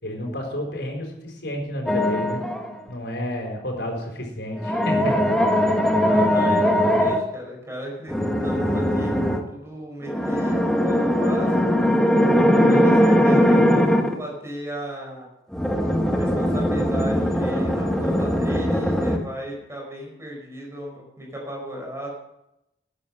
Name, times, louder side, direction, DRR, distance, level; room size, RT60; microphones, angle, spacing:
voice 1, 0.0-2.4 2.9-5.1, left 1 dB, 75° left, 2 dB, 4.6 m, -30 dB
sound 1, 1.9-2.8 4.6-7.2 8.1-9.4 10.1-14.1 15.5-19.2, equal, 5° left, 1.3 m, -20 dB
voice 2, 5.9-11.7 12.6-15.3 16.1-22.1, equal, 15° right, -1 dB, 4.8 m, -35 dB
13.5 x 9.9 x 6.5 m, 0.87 s
head